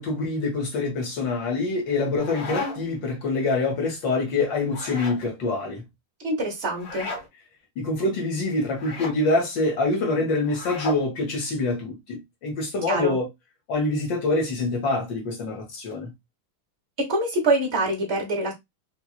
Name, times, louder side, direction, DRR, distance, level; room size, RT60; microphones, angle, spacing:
voice 1, 0.0-5.8 7.8-13.3 13.7-16.1, left 3 dB, 60° left, 1.9 m, -25 dB
sound 1, 1.9-3.0 4.6-5.2 6.8-7.3 8.7-9.2 10.4-11.1, left 3 dB, 75° left, 2.5 m, -34 dB
voice 2, 6.2-7.1 12.9-13.2 17.0-18.5, right 2 dB, 40° right, 1.1 m, -25 dB
4.6 x 2.5 x 2.4 m
omnidirectional pair, 2.4 m